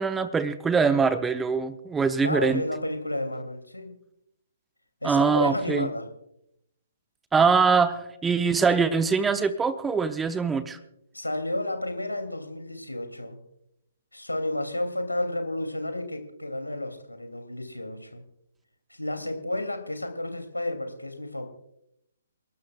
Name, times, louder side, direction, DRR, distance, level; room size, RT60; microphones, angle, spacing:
voice 1, 0.0-2.6 5.0-5.9 7.3-10.8, right 5 dB, 10° right, 12 dB, 0.7 m, -23 dB
voice 2, 2.2-3.9 5.0-6.1 11.1-13.4 14.1-18.2 18.9-21.5, left 1 dB, 80° left, 6 dB, 2.7 m, -31 dB
29.0 x 12.5 x 2.4 m, 0.79 s
figure-of-eight pair, 130°, 0 cm